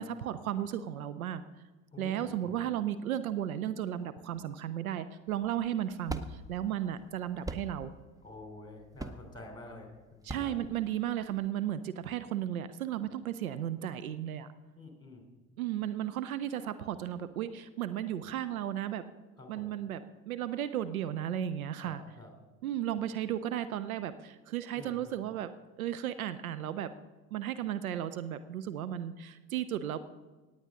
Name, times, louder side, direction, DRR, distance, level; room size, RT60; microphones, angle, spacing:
voice 1, 0.0-1.4 2.0-7.9 10.2-14.5 15.6-19.0 19.5-22.0 22.6-25.5 25.8-26.9 27.3-30.0, right 11 dB, 75° right, 13 dB, 0.7 m, -34 dB
voice 2, 1.9-2.6 8.2-10.6 14.8-15.3 19.4-19.8 21.8-22.3 24.7-25.1, left 2 dB, 10° left, 2 dB, 3.5 m, -49 dB
sound 1, 5.3-11.5, right 2 dB, 10° right, 0.7 m, -43 dB
18.0 x 8.9 x 3.8 m, 1.2 s
figure-of-eight pair, 65°, 43 cm